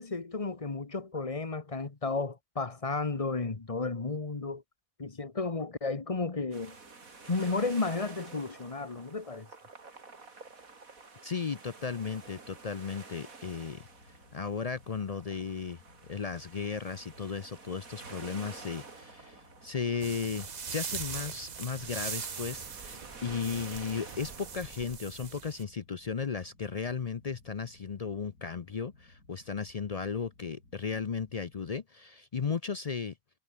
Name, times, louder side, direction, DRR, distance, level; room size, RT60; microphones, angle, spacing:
voice 1, 0.0-4.6 5.0-6.8 7.3-9.5, left 3 dB, 25° left, 1.3 m, -33 dB
sound 1, 6.5-25.0, right 4 dB, 75° right, 3.4 m, -50 dB
voice 2, 11.2-13.9 14.3-15.8 16.1-33.1, left 5 dB, 50° left, 0.4 m, -35 dB
sound 2, 13.4-31.8, left 2 dB, 85° left, 5.4 m, -60 dB
sound 3, 20.0-25.6, right 6 dB, 40° right, 0.8 m, -41 dB
omnidirectional pair, 1.5 m